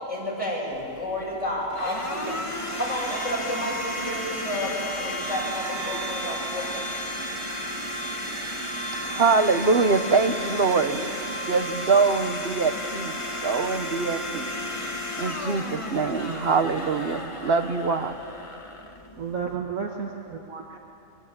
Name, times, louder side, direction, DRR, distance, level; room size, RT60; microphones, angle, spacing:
voice 1, 0.1-2.4 2.7-6.8, left 1 dB, 60° left, 8.1 m, -31 dB
Domestic sounds home sounds, 0.7-19.6, equal, 25° left, 1.7 m, -33 dB
voice 2, 9.0-13.1 13.4-14.5 15.2-18.2, right 4 dB, 50° right, 1.3 m, -24 dB
voice 3, 19.2-20.8, right 6 dB, 80° right, 1.9 m, -32 dB
27.0 x 24.0 x 8.9 m
omnidirectional pair, 1.4 m